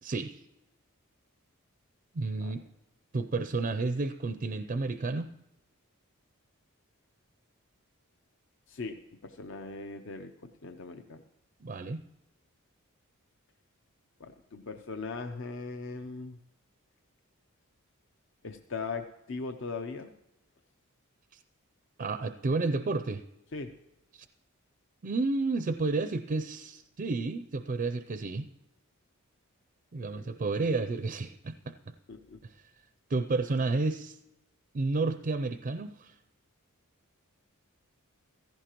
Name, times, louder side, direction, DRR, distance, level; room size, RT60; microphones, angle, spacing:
voice 1, 0.0-0.4 2.1-2.6 3.1-5.3 11.6-12.0 21.3-21.4 22.0-23.2 24.1-24.3 25.0-28.5 29.9-31.9 32.4-32.5 33.1-34.2 34.7-36.1, right 3 dB, 40° right, 10 dB, 0.4 m, -31 dB
voice 2, 8.7-11.2 14.2-16.4 18.4-20.1 23.5-23.7 30.1-30.3 32.1-32.4, left 4 dB, 60° left, 6 dB, 0.6 m, -39 dB
16.0 x 14.5 x 3.0 m, 0.88 s
head